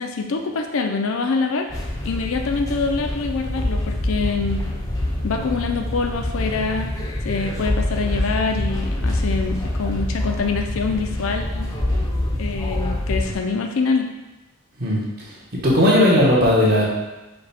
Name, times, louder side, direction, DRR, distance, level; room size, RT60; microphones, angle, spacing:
voice 1, 0.0-4.6 5.2-6.9 7.2-11.7 12.4-14.1, left 4 dB, 60° left, 4 dB, 0.4 m, -25 dB
sound 1, 1.7-13.3, left 1 dB, 15° left, 0.6 m, -25 dB
voice 2, 14.8-16.8, left 1 dB, 45° right, -5 dB, 1.1 m, -17 dB
5.1 x 2.2 x 4.1 m, 1.1 s
head